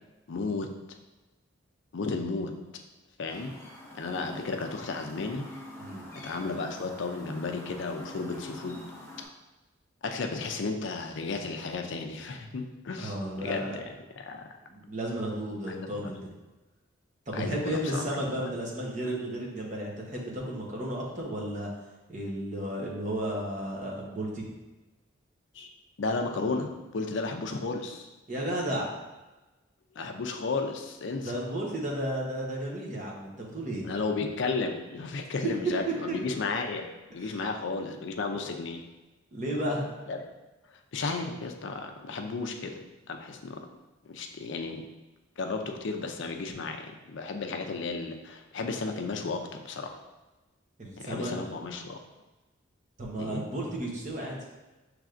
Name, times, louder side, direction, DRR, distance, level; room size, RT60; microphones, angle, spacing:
voice 1, 0.3-0.7 1.9-2.5 3.2-3.6 4.0-5.5 6.2-8.8 10.0-13.1 13.4-13.8 14.2-14.4 15.7-15.9 17.3-18.5 25.5-25.7 26.0-28.1 30.0-31.3 33.8-36.9 37.1-38.8 40.1-40.2 40.9-42.8 43.1-43.6 44.0-44.9 45.4-50.0 51.0-52.0 53.2-53.4, left 3 dB, 60° left, 4 dB, 0.4 m, -33 dB
Chirp tweet, 3.3-9.2, left 1 dB, 15° left, 0.7 m, -45 dB
voice 2, 13.0-13.9 14.3-14.4 14.7-16.3 17.3-21.7 22.1-24.5 28.3-28.9 31.2-33.9 36.1-36.2 37.2-37.4 39.3-39.8 50.8-51.3 53.0-54.4, right 1 dB, 35° right, -2 dB, 0.9 m, -33 dB
6.0 x 3.2 x 2.5 m, 1.1 s
head